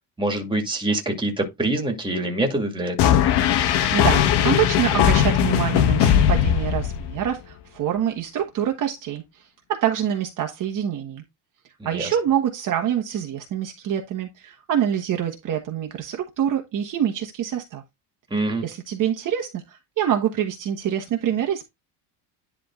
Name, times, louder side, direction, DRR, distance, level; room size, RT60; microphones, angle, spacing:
voice 1, 0.2-3.2 11.8-12.1 18.3-18.6, right 1 dB, 10° right, 2.2 m, -25 dB
sound 1, 3.0-7.3, left 10 dB, 60° left, 1.3 m, -19 dB
voice 2, 3.7-11.2 11.8-17.8 18.6-21.6, right 10 dB, 45° right, 1.3 m, -26 dB
10.5 x 3.7 x 3.7 m
cardioid pair, 145°, 45 cm